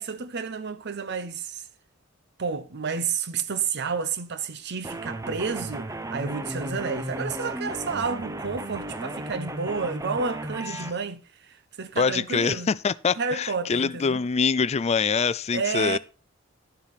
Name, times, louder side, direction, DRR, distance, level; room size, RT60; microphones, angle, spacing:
voice 1, 0.0-1.7 2.4-12.7 13.1-14.2 15.5-16.0, right 5 dB, 55° right, 0.8 m, -30 dB
sound 1, 4.8-10.9, right 1 dB, 15° right, 0.8 m, -34 dB
voice 2, 12.0-16.0, left 5 dB, 30° left, 0.4 m, -24 dB
11.0 x 7.4 x 4.1 m
head